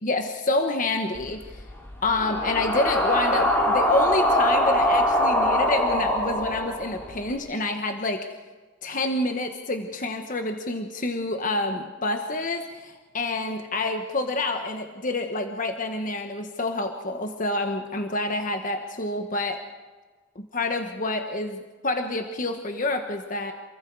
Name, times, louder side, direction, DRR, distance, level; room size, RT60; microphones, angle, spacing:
voice 1, 0.0-1.6 2.0-8.2 8.8-19.6 20.3-23.5, left 2 dB, 40° left, 5 dB, 1.4 m, -28 dB
sound 1, 1.1-7.3, equal, 10° left, 3.4 m, -23 dB
28.0 x 22.0 x 4.8 m, 1.3 s
head